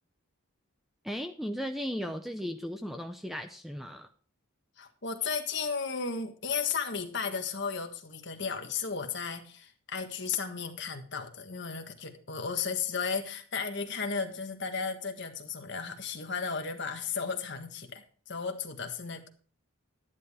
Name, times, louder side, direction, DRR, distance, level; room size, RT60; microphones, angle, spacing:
voice 1, 1.0-4.1, equal, ahead, 6 dB, 0.6 m, -36 dB
voice 2, 4.8-19.3, left 5 dB, 50° left, 5 dB, 1.5 m, -34 dB
11.5 x 10.5 x 3.6 m, 0.42 s
head